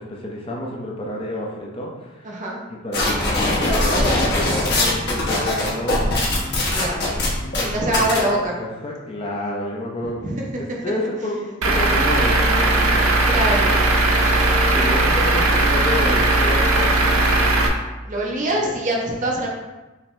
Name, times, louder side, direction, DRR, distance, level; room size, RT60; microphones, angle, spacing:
voice 1, 0.0-2.4 2.7-6.1 7.5-10.2 10.6-13.2 14.7-17.2 18.4-18.7, left 1 dB, 25° left, -2 dB, 0.6 m, -29 dB
voice 2, 2.2-2.6 6.7-7.0 7.7-8.5 10.2-10.6 13.3-13.9 18.0-19.5, right 1 dB, 35° right, -2 dB, 0.8 m, -24 dB
sound 1, 2.9-8.2, left 1 dB, 50° left, 1.2 m, -21 dB
Truck / Idling, 11.6-17.7, right 2 dB, 85° right, 0.7 m, -18 dB
5.9 x 2.8 x 3.2 m, 1.1 s
head